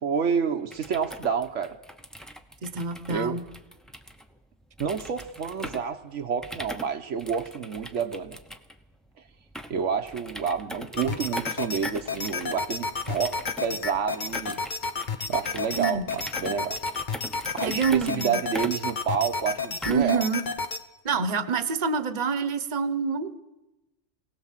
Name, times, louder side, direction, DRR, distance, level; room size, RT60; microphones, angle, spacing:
voice 1, 0.0-1.8 3.1-3.4 4.8-8.4 9.7-14.6 15.3-16.8 17.6-20.3, right 7 dB, 80° right, 6 dB, 1.3 m, -29 dB
sound 1, 0.6-20.2, equal, ahead, 0.8 m, -42 dB
voice 2, 2.6-3.4 15.8-16.0 17.6-18.4 19.9-20.4 21.0-23.3, right 5 dB, 35° right, 11 dB, 1.1 m, -27 dB
sound 2, 11.0-20.8, left 4 dB, 45° left, 1.0 m, -32 dB
24.0 x 17.5 x 7.5 m, 1.0 s
omnidirectional pair, 1.2 m